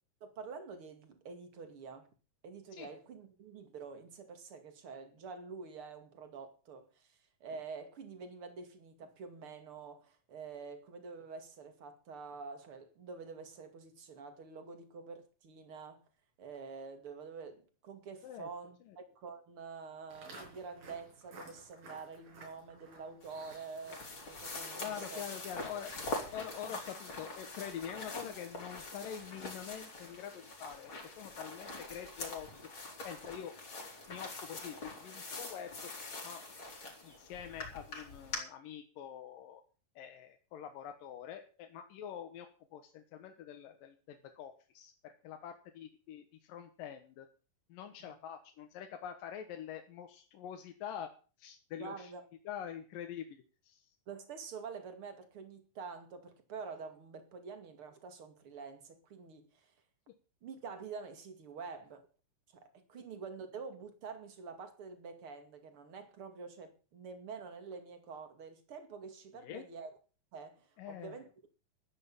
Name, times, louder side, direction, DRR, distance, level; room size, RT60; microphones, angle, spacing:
voice 1, 0.2-2.1 2.4-16.0 16.4-25.3 26.7-26.8 48.0-48.2 51.8-52.2 54.1-59.7 60.4-62.1 62.5-70.0 70.3-71.3, right 5 dB, 45° right, 2.9 m, -47 dB
Walk footsteps, 20.1-29.3, right 2 dB, 90° right, 7.6 m, -57 dB
sound 1, 23.2-38.4, left 2 dB, 35° left, 4.5 m, -44 dB
voice 2, 24.8-25.9 26.3-30.9 31.2-32.5 33.0-33.5 34.1-35.7 36.2-36.4 37.0-39.6 40.0-47.3 47.7-51.1 51.4-52.1 52.5-53.9 62.9-63.0 69.4-69.6 70.8-71.2, left 9 dB, 90° left, 3.0 m, -45 dB
13.0 x 10.0 x 7.1 m
omnidirectional pair, 3.9 m